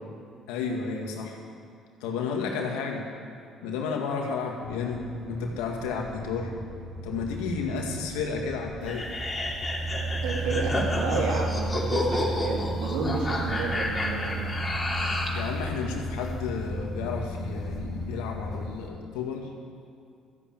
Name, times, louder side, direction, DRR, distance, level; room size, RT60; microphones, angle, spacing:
voice 1, 0.5-1.4 2.0-3.1 3.6-6.5 7.0-9.1 15.3-19.5, left 5 dB, 90° left, 1 dB, 2.0 m, -32 dB
sound 1, 4.6-18.7, right 2 dB, 30° right, 3.2 m, -34 dB
sound 2, 8.9-15.4, left 2 dB, 25° left, 3.1 m, -30 dB
Bird, 10.1-18.9, left 4 dB, 55° left, 1.4 m, -45 dB
voice 2, 10.1-14.5, right 3 dB, 80° right, 0 dB, 2.7 m, -31 dB
13.5 x 8.0 x 9.0 m, 2.4 s
supercardioid pair, 70°, 0 cm